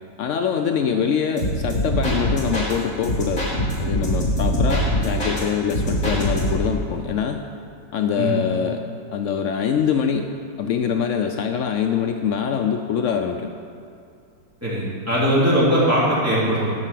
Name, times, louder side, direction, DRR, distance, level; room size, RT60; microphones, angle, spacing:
voice 1, 0.2-3.5 3.8-7.4 7.9-8.8 9.1-10.3 10.6-13.5, left 7 dB, 85° left, 5 dB, 0.6 m, -24 dB
sound 1, 1.4-2.7 3.0-5.4 5.7-6.7, equal, 40° left, 2.9 m, -23 dB
voice 2, 14.6-16.7, equal, 10° right, -9 dB, 3.0 m, -20 dB
12.5 x 5.6 x 7.6 m, 2.4 s
omnidirectional pair, 1.9 m